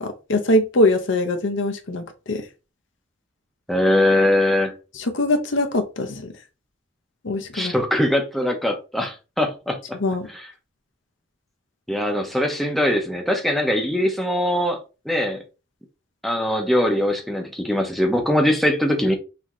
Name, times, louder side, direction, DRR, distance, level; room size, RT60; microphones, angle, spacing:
voice 1, 0.0-2.4 5.0-6.3 7.2-7.7 10.0-10.3, left 1 dB, 70° left, 0.8 m, -22 dB
voice 2, 3.7-4.7 7.5-9.8 10.3-10.4 11.9-14.8 15.1-15.4 16.2-19.2, left 1 dB, ahead, 0.8 m, -21 dB
5.8 x 2.8 x 3.1 m
head